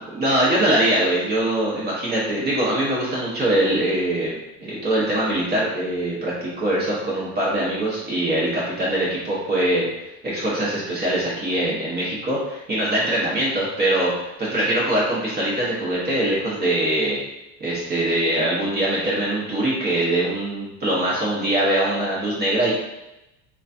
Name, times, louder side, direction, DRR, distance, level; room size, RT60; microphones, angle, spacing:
voice 1, 0.1-4.3 4.6-9.8 10.2-14.1 14.4-17.2 17.6-22.7, right 1 dB, 30° right, -7 dB, 0.9 m, -22 dB
3.1 x 2.3 x 2.6 m, 0.93 s
supercardioid pair, 115°, 33 cm